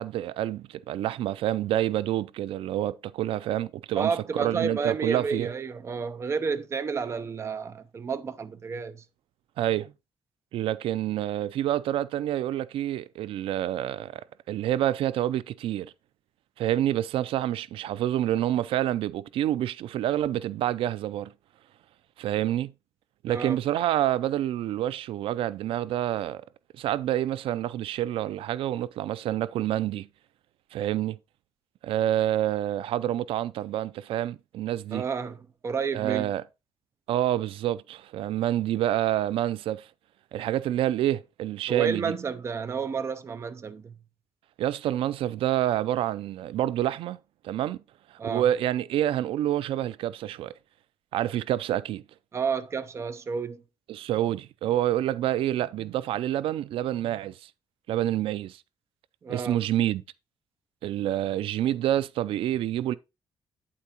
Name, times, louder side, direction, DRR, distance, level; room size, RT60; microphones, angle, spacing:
voice 1, 0.0-5.5 9.6-9.9 10.5-15.9 16.6-21.3 22.2-22.7 23.2-26.4 26.7-30.1 30.7-31.2 31.8-35.0 35.9-36.4 37.1-39.9 40.3-42.1 44.6-47.2 47.4-47.8 48.1-50.5 51.1-52.0 53.9-57.5 57.9-58.6 59.3-60.0 60.8-63.0, right 12 dB, 80° right, 0.4 m, -28 dB
voice 2, 4.0-9.0 23.3-23.6 34.9-36.3 41.7-43.9 48.2-48.4 52.3-53.6 59.2-59.6, right 5 dB, 30° right, 0.5 m, -31 dB
8.4 x 8.3 x 2.8 m
cardioid pair, 170°, 9 cm